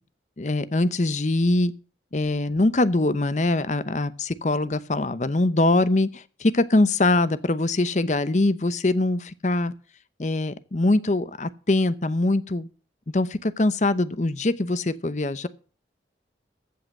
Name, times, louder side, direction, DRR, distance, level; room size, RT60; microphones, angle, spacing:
voice 1, 0.4-1.7 2.1-9.7 10.2-12.7 13.1-15.5, left 2 dB, 40° left, 0.7 m, -23 dB
15.0 x 5.7 x 7.4 m
head